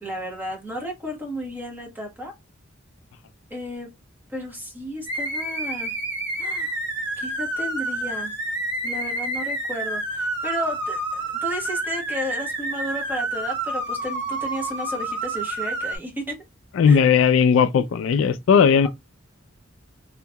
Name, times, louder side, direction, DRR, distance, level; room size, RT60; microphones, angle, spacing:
voice 1, 0.0-2.3 3.5-3.9 4.3-5.9 6.4-6.7 7.2-8.3 8.8-16.4 16.8-17.0, equal, 10° right, 1.1 m, -33 dB
sound 1, 5.1-16.0, right 2 dB, 60° right, 1.0 m, -29 dB
voice 2, 16.7-18.9, left 6 dB, 65° left, 0.3 m, -17 dB
2.8 x 2.7 x 2.2 m
head